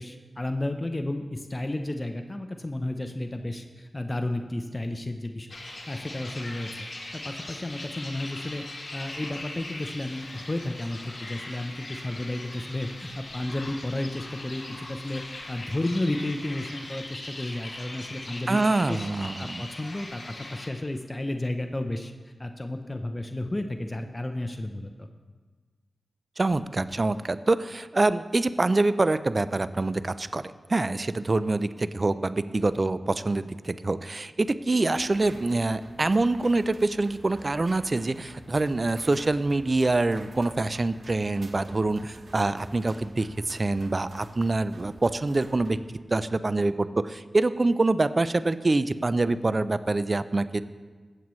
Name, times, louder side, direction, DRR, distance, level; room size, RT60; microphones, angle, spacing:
voice 1, 0.0-5.5 5.9-6.7 7.1-8.6 8.9-19.1 19.4-22.1 22.4-25.1, left 1 dB, 30° left, 6 dB, 0.7 m, -32 dB
sound 1, 5.5-20.7, left 2 dB, 55° left, 1.9 m, -40 dB
voice 2, 18.5-19.7 26.4-30.4 30.7-50.6, right 2 dB, 45° right, 14 dB, 0.4 m, -25 dB
sound 2, 34.9-45.8, right 2 dB, 65° right, 1.1 m, -49 dB
15.5 x 7.6 x 3.2 m, 1.5 s
cardioid pair, 40°, 0 cm